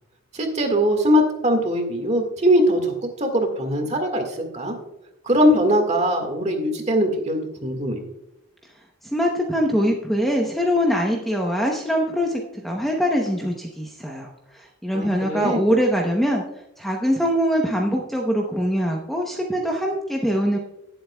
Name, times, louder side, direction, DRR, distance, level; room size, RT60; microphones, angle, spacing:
voice 1, 0.3-4.7 5.2-8.0 14.9-15.6, equal, 30° right, 4 dB, 1.7 m, -21 dB
voice 2, 8.6-16.4 16.8-20.6, equal, ahead, 0 dB, 0.8 m, -23 dB
18.0 x 7.8 x 2.3 m, 0.91 s
head